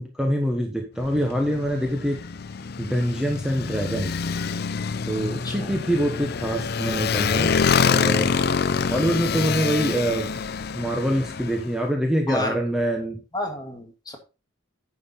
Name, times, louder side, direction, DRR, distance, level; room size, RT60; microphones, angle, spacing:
voice 1, 0.0-2.3 2.8-4.3 5.0-7.6 7.8-8.4 8.9-10.4 10.7-13.2, equal, 5° right, 1 dB, 1.2 m, -25 dB
Motorcycle, 1.0-11.7, left 5 dB, 50° left, 0.5 m, -26 dB
voice 2, 12.3-12.6 13.3-14.2, left 1 dB, 20° left, 3 dB, 1.7 m, -30 dB
9.4 x 6.2 x 4.1 m, 0.30 s
head